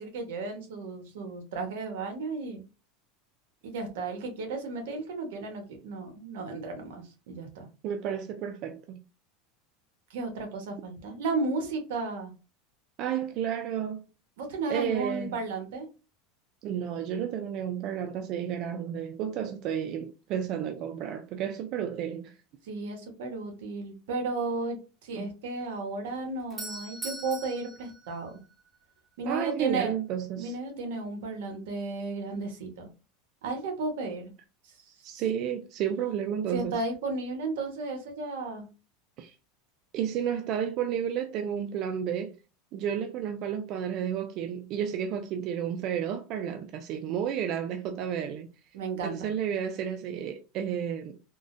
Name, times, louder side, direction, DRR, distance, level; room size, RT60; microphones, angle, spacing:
voice 1, 0.0-2.6 3.6-7.7 10.1-12.3 14.4-15.9 22.6-24.8 25.0-28.3 29.2-29.9 30.4-32.9 33.4-34.2 36.5-38.7 48.7-49.3, right 3 dB, 80° right, 1.0 m, -34 dB
voice 2, 7.8-9.0 13.0-14.0 14.7-15.4 16.6-22.4 25.1-25.3 29.2-30.6 35.0-36.8 39.2-39.3 39.9-42.4 42.7-48.5 49.0-51.2, right 9 dB, 45° right, 0.3 m, -32 dB
Doorbell, 26.1-29.0, right 2 dB, 20° right, 0.7 m, -42 dB
3.6 x 2.1 x 2.5 m
supercardioid pair, 145°, 0 cm